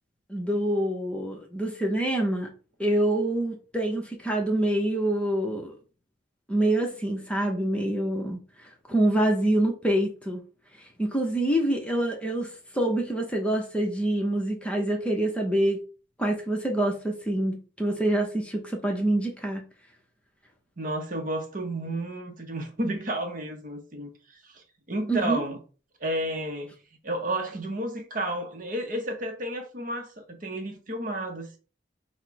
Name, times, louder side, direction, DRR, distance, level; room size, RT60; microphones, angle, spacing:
voice 1, 0.3-2.5 2.8-5.7 6.5-10.4 10.8-15.8 16.2-19.6 25.1-25.4, right 1 dB, 5° left, 0.7 m, -26 dB
voice 2, 20.8-25.6 26.0-26.8 27.0-31.6, right 1 dB, 45° right, 0.7 m, -32 dB
4.2 x 2.1 x 4.6 m
head